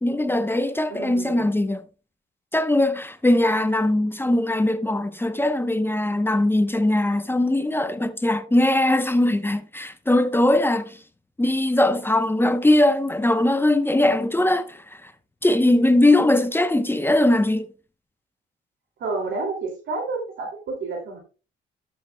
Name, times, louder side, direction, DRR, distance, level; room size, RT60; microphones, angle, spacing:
voice 1, 0.0-1.8 2.5-11.0 11.4-15.1 15.4-17.7, left 1 dB, 10° left, 0.8 m, -20 dB
voice 2, 0.9-1.5 19.0-21.2, right 3 dB, 75° right, 2.6 m, -30 dB
12.5 x 7.6 x 2.2 m
cardioid pair, 90°, 20 cm